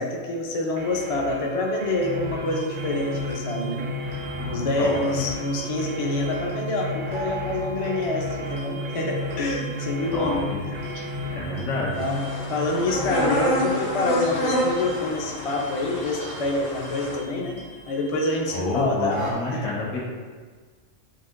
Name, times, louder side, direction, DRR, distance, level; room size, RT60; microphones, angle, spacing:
voice 1, 0.0-3.9 4.4-11.0 11.9-12.2 12.5-17.6 17.9-19.2 19.5-19.7, left 2 dB, 40° left, -1 dB, 0.5 m, -27 dB
sound 1, 0.8-11.5, right 1 dB, 55° right, 0.6 m, -38 dB
sound 2, 2.0-19.3, equal, 90° right, 1.6 m, -35 dB
voice 2, 4.2-5.2 10.1-10.6 11.3-12.0 18.5-20.0, left 2 dB, 85° left, -5 dB, 1.4 m, -29 dB
sound 3, 12.0-17.2, equal, 65° left, 1.1 m, -28 dB
7.3 x 2.5 x 2.5 m, 1.5 s
omnidirectional pair, 1.3 m